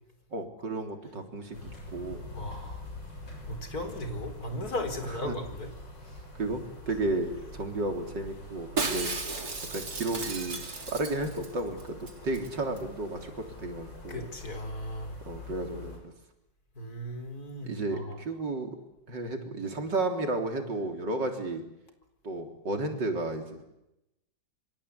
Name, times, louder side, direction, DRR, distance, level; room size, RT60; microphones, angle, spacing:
voice 1, 0.3-1.6 1.9-2.3 5.0-5.4 6.3-9.1 9.7-14.3 15.2-16.1 17.6-18.8 19.1-21.6 22.2-23.7, right 2 dB, 75° right, 4 dB, 4.3 m, -33 dB
sound 1, 1.5-16.0, left 1 dB, 90° left, 7.3 m, -45 dB
voice 2, 2.3-2.8 3.5-5.7 14.1-15.1 16.8-18.2, left 1 dB, 55° left, 7 dB, 4.7 m, -36 dB
Shatter, 8.8-11.5 11.8-11.9 12.1-12.5 12.8-12.9, right 4 dB, 55° right, 3.3 m, -34 dB
26.5 x 24.5 x 8.4 m, 0.89 s
omnidirectional pair, 1.9 m